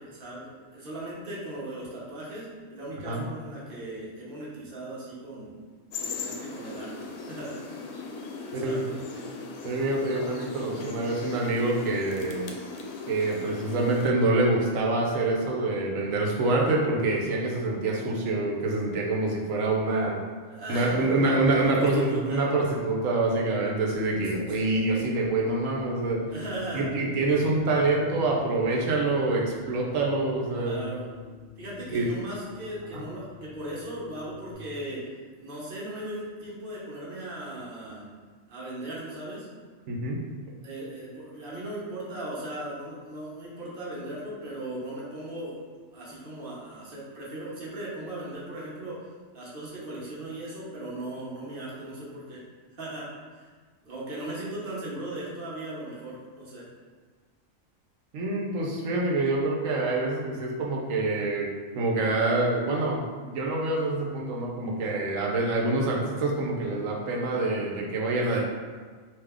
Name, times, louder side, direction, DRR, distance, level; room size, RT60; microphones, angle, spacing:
voice 1, 0.0-5.5 6.0-7.6 8.4-9.2 20.5-22.4 26.3-26.8 30.6-31.1 31.6-35.0 35.4-38.1 38.5-39.5 40.6-45.6 45.9-49.0 49.3-52.4 52.8-53.5 53.8-56.7 68.2-68.4, right 1 dB, 45° right, -6 dB, 1.1 m, -38 dB
sound 1, 5.9-14.1, left 4 dB, 85° left, 1.0 m, -38 dB
voice 2, 9.6-12.5 13.1-20.2 20.7-26.2 26.7-30.9 31.9-32.1 32.9-33.1 39.9-40.2 58.1-61.5 61.7-68.4, right 2 dB, 80° right, -1 dB, 1.1 m, -26 dB
sound 2, 23.9-34.5, left 4 dB, 20° right, 1.2 m, -42 dB
3.4 x 2.8 x 3.5 m, 1.5 s
omnidirectional pair, 1.4 m